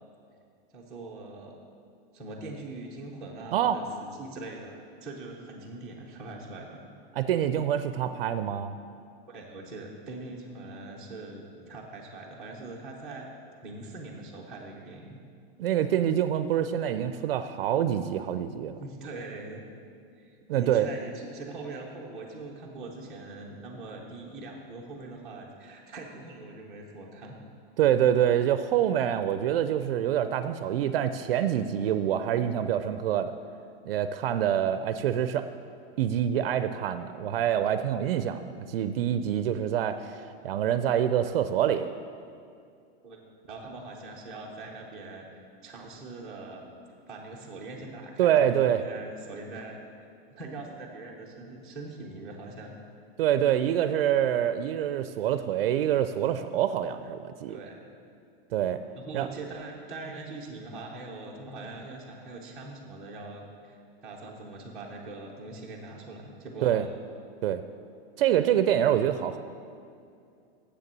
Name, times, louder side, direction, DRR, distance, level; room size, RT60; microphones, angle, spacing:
voice 1, 0.7-1.5 2.1-6.8 9.3-13.3 13.6-15.2 18.8-19.6 20.2-27.4 43.0-43.2 43.5-45.3 45.6-46.6 47.1-49.8 50.4-52.8 57.5-57.9 58.9-66.9, right 2 dB, ahead, -8 dB, 0.5 m, -42 dB
voice 2, 7.2-8.7 15.6-18.8 20.5-20.9 27.8-33.3 33.9-35.5 36.0-41.9 48.2-48.8 53.2-57.6 58.5-58.8 59.1-59.3 66.6-66.9 67.4-67.6 68.2-69.4, right 10 dB, 70° right, 11 dB, 0.5 m, -26 dB
7.6 x 6.7 x 7.3 m, 2.4 s
supercardioid pair, 180°, 30 cm